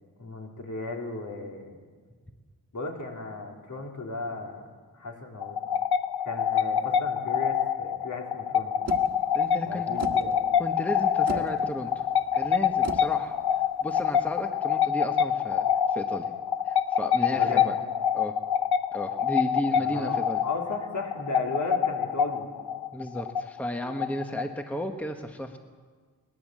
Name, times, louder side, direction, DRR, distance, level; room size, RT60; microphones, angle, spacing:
voice 1, 0.2-1.8 2.7-4.7 4.9-5.6 6.2-8.9 9.7-10.5 11.3-11.5 17.3-17.7 19.7-22.5, left 3 dB, 50° left, 1 dB, 3.3 m, -36 dB
sound 1, 5.4-24.8, left 8 dB, 85° left, 0.8 m, -26 dB
sound 2, 8.9-14.5, right 4 dB, 40° right, 1.6 m, -41 dB
voice 2, 9.3-9.9 10.6-12.1 12.3-13.4 13.8-16.3 16.7-17.7 18.1-18.4 18.9-20.4 22.9-25.6, equal, 5° left, 5 dB, 1.1 m, -34 dB
21.0 x 19.5 x 7.5 m, 1.6 s
wide cardioid pair, 135°, 37 cm